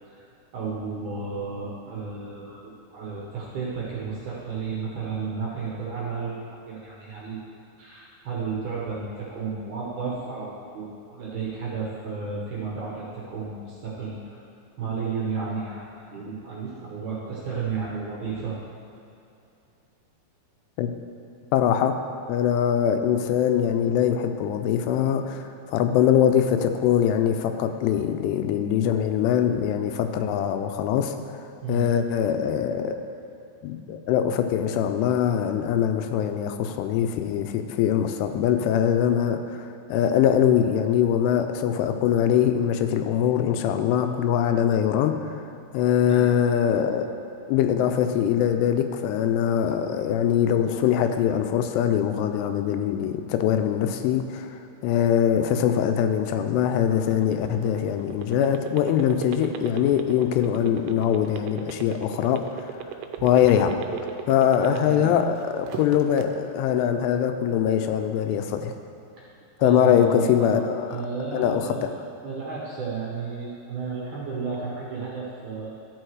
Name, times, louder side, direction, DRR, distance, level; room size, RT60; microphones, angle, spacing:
voice 1, 0.5-6.4 6.7-7.4 7.8-14.4 14.8-18.6 31.6-32.1 46.1-46.2 64.6-65.1 69.6-70.6 70.9-71.9 72.2-75.7, right 5 dB, 65° right, -6 dB, 2.0 m, -32 dB
voice 2, 21.5-22.0 22.3-31.2 31.7-33.0 33.6-45.4 45.7-47.1 47.5-62.8 63.2-63.8 64.3-68.7 69.6-70.9 71.3-71.9, left 9 dB, 90° left, 7 dB, 2.7 m, -23 dB
sound 1, 56.9-65.1 65.5-66.2, right 11 dB, 85° right, 2.7 m, -35 dB
12.5 x 4.7 x 4.7 m, 2.7 s
omnidirectional pair, 4.8 m